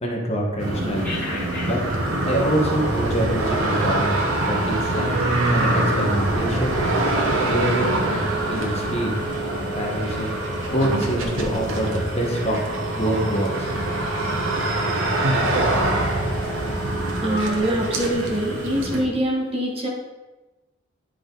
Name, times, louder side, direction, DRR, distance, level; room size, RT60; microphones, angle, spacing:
voice 1, 0.0-1.1 1.6-1.8 2.2-4.2 4.5-5.1 5.5-6.8 7.4-9.1 9.7-10.3 10.7-12.6 12.9-13.7, right 1 dB, 30° left, -1 dB, 1.2 m, -25 dB
sound 1, 0.6-19.0, right 1 dB, 70° right, 1.1 m, -24 dB
Telephone, 0.9-19.0, right 2 dB, 10° left, 2.0 m, -36 dB
voice 2, 17.2-19.9, equal, 30° right, -1 dB, 1.3 m, -24 dB
10.0 x 4.9 x 3.9 m, 1.2 s
head